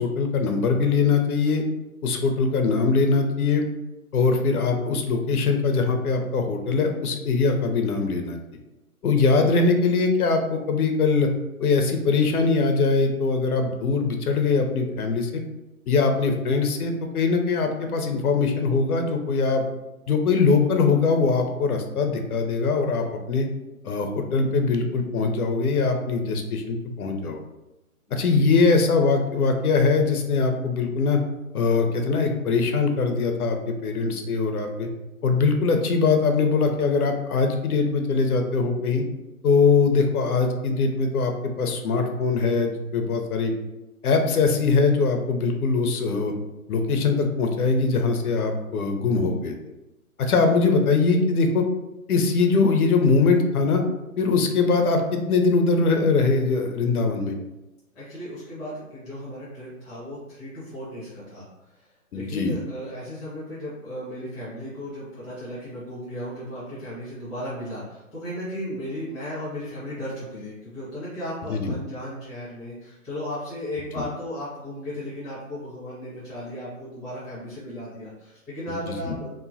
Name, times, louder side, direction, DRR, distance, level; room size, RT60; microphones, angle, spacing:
voice 1, 0.0-1.6 2.0-3.6 4.1-8.4 9.0-11.3 11.6-15.3 15.9-19.7 20.1-23.5 23.8-27.4 28.1-31.2 31.5-34.9 35.2-39.0 39.4-43.5 44.0-46.3 46.7-49.6 50.2-51.7 52.1-53.8 54.2-57.3 62.1-62.5 71.5-71.7 74.0-74.1 78.7-79.2, left 4 dB, 85° left, 4 dB, 0.6 m, -22 dB
voice 2, 28.1-28.5 57.9-61.5 61.7-61.9 62.1-79.4, equal, ahead, -11 dB, 0.5 m, -35 dB
3.0 x 2.1 x 2.6 m, 0.98 s
hypercardioid pair, 150°, 44 cm